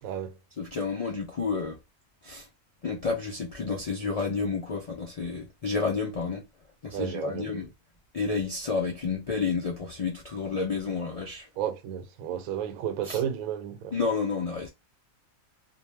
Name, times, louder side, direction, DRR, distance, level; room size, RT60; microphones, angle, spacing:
voice 1, 0.0-0.4 6.9-7.5 11.6-13.9, right 9 dB, 85° right, 1.0 m, -32 dB
voice 2, 0.6-1.8 2.2-2.5 2.8-6.4 6.8-7.7 8.1-11.5 13.1-13.2 13.9-14.7, left 4 dB, 60° left, 0.3 m, -30 dB
2.4 x 2.0 x 3.2 m
omnidirectional pair, 1.4 m